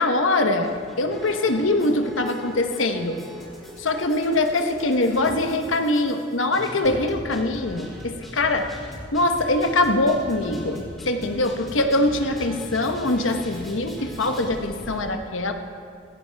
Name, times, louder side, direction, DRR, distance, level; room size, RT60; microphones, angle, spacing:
voice 1, 0.0-3.2 3.8-8.7 9.1-15.5, left 2 dB, 90° left, 6 dB, 1.1 m, -23 dB
sound 1, 0.6-15.0, equal, ahead, 4.2 m, -40 dB
16.5 x 16.0 x 3.5 m, 2.3 s
head